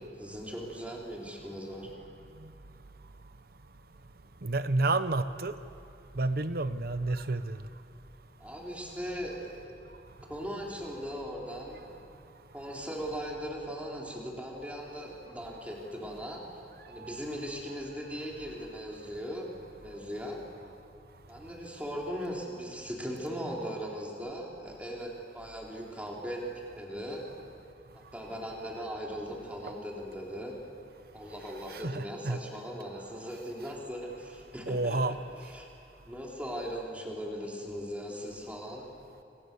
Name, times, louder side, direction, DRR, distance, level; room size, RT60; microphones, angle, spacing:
voice 1, 0.2-1.9 8.4-9.8 10.3-11.9 12.5-16.4 16.9-19.5 19.8-20.4 21.3-26.4 26.8-27.2 28.1-30.6 31.1-35.7 36.1-38.8, equal, 10° right, -2 dB, 3.9 m, -39 dB
voice 2, 4.4-5.5 6.1-7.6 17.0-17.2 31.7-32.4 34.7-35.1, right 2 dB, 55° right, 12 dB, 1.0 m, -30 dB
27.0 x 25.5 x 7.0 m, 2.7 s
head